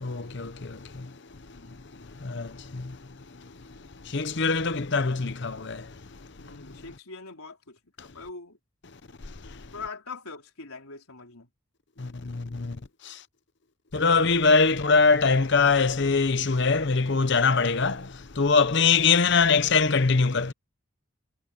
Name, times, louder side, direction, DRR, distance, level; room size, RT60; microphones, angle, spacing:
voice 1, 0.0-1.1 2.2-3.0 4.0-5.9 9.5-9.6 12.0-12.8 13.0-13.2 13.9-20.5, left 4 dB, 50° left, 0.8 m, -23 dB
voice 2, 1.5-1.8 6.4-8.6 9.7-11.5, left 4 dB, 80° left, 4.2 m, -42 dB
head